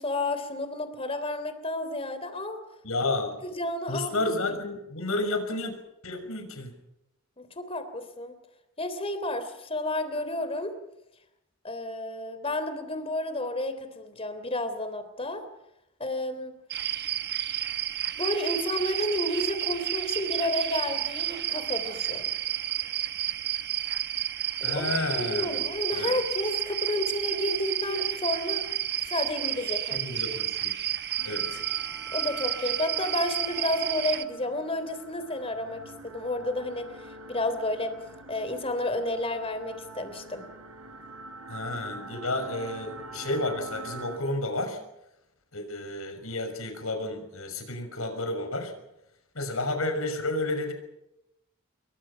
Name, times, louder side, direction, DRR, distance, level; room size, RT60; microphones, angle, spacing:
voice 1, 0.0-2.6 3.4-4.3 7.4-8.3 8.8-10.7 11.6-15.4 16.0-16.5 18.2-22.2 24.6-28.7 29.1-30.1 32.1-36.9 37.3-37.9 38.3-40.5, left 1 dB, 25° left, 10 dB, 3.4 m, -31 dB
voice 2, 2.8-3.4 3.9-5.7 6.0-6.7 24.6-25.6 25.9-26.1 29.9-30.7 31.2-31.6 41.5-44.8 45.5-48.7 49.3-50.7, left 2 dB, 80° left, 6 dB, 6.2 m, -31 dB
sound 1, 16.7-34.2, right 12 dB, 50° right, 1.1 m, -31 dB
sound 2, 31.2-44.2, right 2 dB, 90° right, 5.8 m, -44 dB
28.0 x 23.5 x 5.8 m, 0.84 s
head